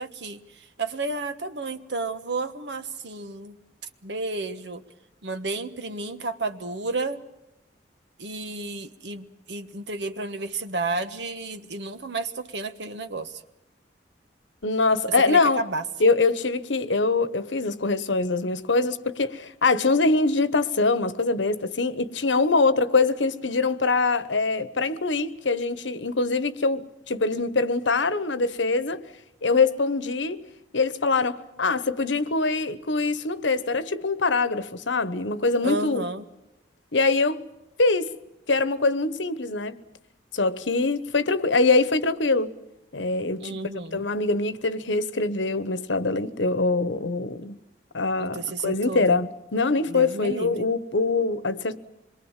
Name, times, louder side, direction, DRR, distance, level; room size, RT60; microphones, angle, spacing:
voice 1, 0.0-3.6 4.0-4.8 5.2-7.2 8.2-13.4 15.3-15.8 35.6-36.2 43.4-44.0 48.2-49.2 49.9-50.7, right 3 dB, 70° right, 1.4 m, -32 dB
voice 2, 14.6-15.6 16.0-29.0 29.4-30.4 30.7-36.0 36.9-37.4 37.8-38.1 38.5-39.8 40.3-42.5 42.9-43.6 43.9-47.6 47.9-51.8, left 3 dB, 85° left, 1.2 m, -23 dB
26.0 x 22.5 x 7.4 m
head